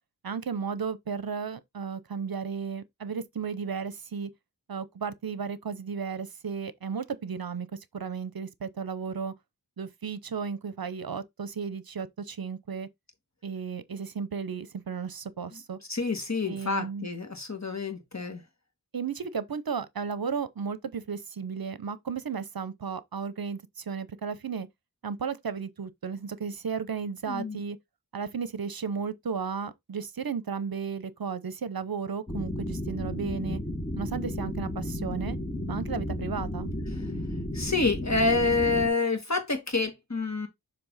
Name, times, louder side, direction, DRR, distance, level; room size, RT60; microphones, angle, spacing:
voice 1, 0.2-4.3 4.7-9.3 9.8-12.9 13.4-15.8 16.5-17.1 18.9-24.7 25.0-27.8 28.1-33.6 34.0-35.4 35.7-36.7, right 6 dB, 65° right, 0.7 m, -34 dB
voice 2, 15.9-18.4 27.3-27.6 37.0-37.1 37.5-40.5, left 3 dB, 40° left, 2.1 m, -28 dB
sound 1, 32.3-38.9, left 1 dB, 15° left, 1.1 m, -33 dB
6.9 x 3.4 x 4.0 m
wide cardioid pair, 40°, 40 cm